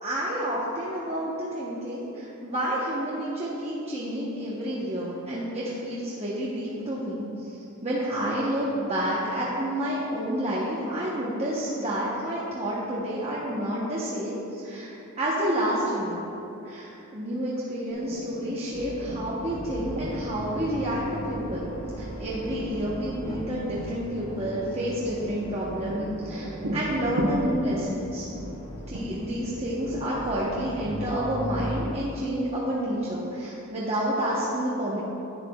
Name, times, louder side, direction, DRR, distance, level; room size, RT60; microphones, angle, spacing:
voice 1, 0.0-7.6 7.8-16.2 16.6-28.3 28.9-35.0, equal, 30° right, -7 dB, 0.9 m, -29 dB
sound 1, 17.9-30.9, right 1 dB, 70° right, 0.9 m, -37 dB
sound 2, 18.7-31.8, equal, 25° left, 0.8 m, -38 dB
11.0 x 8.2 x 2.3 m, 3.0 s
head